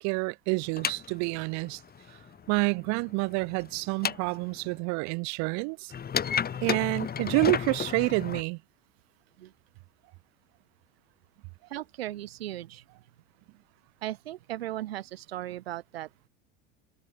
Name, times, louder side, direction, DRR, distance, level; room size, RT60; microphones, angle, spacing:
voice 1, 0.0-1.8 2.5-5.9 6.6-8.6, right 32 dB, 65° right, 2.6 m, -28 dB
sound 1, 0.6-4.8 5.9-8.4, left 7 dB, 30° left, 3.8 m, -33 dB
voice 2, 11.7-12.8 14.0-16.1, right 14 dB, 90° right, 7.7 m, -37 dB
supercardioid pair, 95°, 29 cm